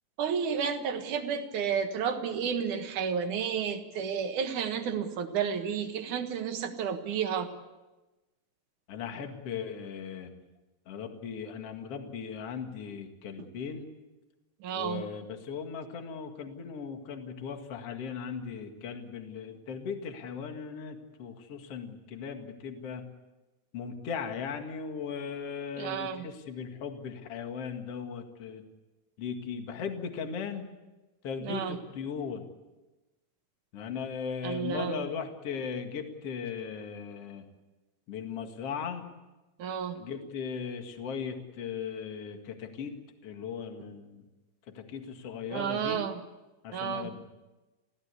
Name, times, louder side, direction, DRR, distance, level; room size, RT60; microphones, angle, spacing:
voice 1, 0.2-7.5 14.6-15.0 25.8-26.3 31.4-31.8 34.4-35.1 39.6-40.0 45.5-46.1 46.7-47.1, right 7 dB, 60° right, 6 dB, 2.4 m, -31 dB
voice 2, 8.9-10.3 10.9-13.9 14.7-23.0 23.7-28.6 29.2-30.7 31.2-32.5 33.7-37.4 38.1-39.0 40.0-42.9 43.2-44.2 44.7-46.0 46.6-47.2, left 6 dB, 45° left, 5 dB, 2.3 m, -38 dB
26.5 x 16.5 x 8.4 m, 1.1 s
omnidirectional pair, 5.0 m